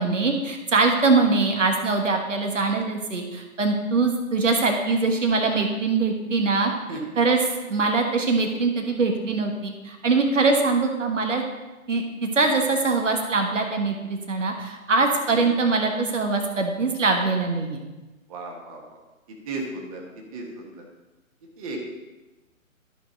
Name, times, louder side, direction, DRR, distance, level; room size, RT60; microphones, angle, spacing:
voice 1, 0.0-11.4 11.9-17.8, right 3 dB, 60° right, 3 dB, 1.4 m, -23 dB
voice 2, 18.3-18.8 19.5-20.0 20.3-20.8 21.6-21.8, right 2 dB, 25° right, -1 dB, 1.4 m, -34 dB
12.5 x 5.2 x 4.0 m, 1.1 s
figure-of-eight pair, 140°, 42 cm